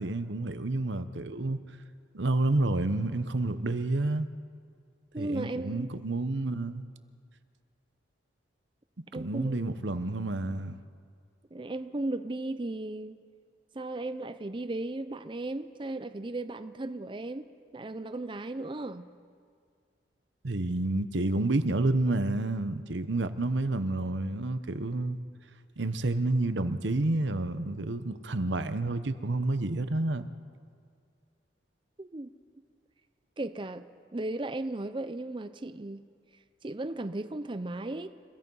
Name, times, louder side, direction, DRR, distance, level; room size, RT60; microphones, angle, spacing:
voice 1, 0.0-1.6 2.1-4.3 5.2-6.8 9.1-10.8 20.4-25.2 25.8-30.3, right 2 dB, 80° right, 0.9 m, -29 dB
voice 2, 5.1-5.9 9.1-9.8 11.5-13.2 13.7-17.5 17.7-19.1 32.0-32.3 33.4-33.8 34.1-36.0 36.6-38.1, right 2 dB, 25° right, 0.5 m, -35 dB
29.5 x 16.5 x 5.5 m
head